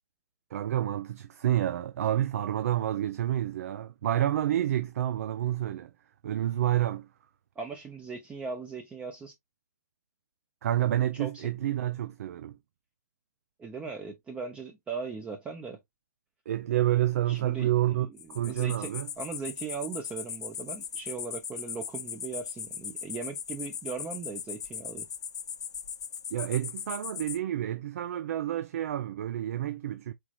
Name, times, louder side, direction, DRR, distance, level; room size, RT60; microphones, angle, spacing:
voice 1, 0.5-5.9 6.2-7.1 10.6-12.5 16.5-19.1 26.3-30.1, right 12 dB, 55° right, 0.5 m, -29 dB
voice 2, 7.6-9.3 11.2-11.3 13.6-15.8 17.3-17.7 18.4-18.9 19.2-25.1, right 5 dB, 10° right, 0.7 m, -38 dB
sound 1, 18.2-27.4, left 8 dB, 65° left, 0.6 m, -39 dB
4.6 x 4.0 x 2.3 m
hypercardioid pair, 135°, 10 cm